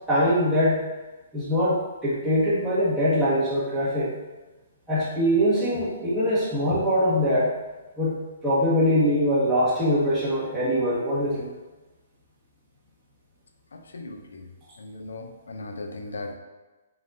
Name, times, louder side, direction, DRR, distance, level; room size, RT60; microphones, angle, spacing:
voice 1, 0.1-0.8 1.3-4.1 4.9-7.5 8.0-8.2 8.4-11.5, equal, 5° right, -13 dB, 1.4 m, -22 dB
voice 2, 14.8-16.3, left 2 dB, 80° left, 5 dB, 0.6 m, -36 dB
4.1 x 3.9 x 2.6 m, 1.2 s
hypercardioid pair, 140°, 0 cm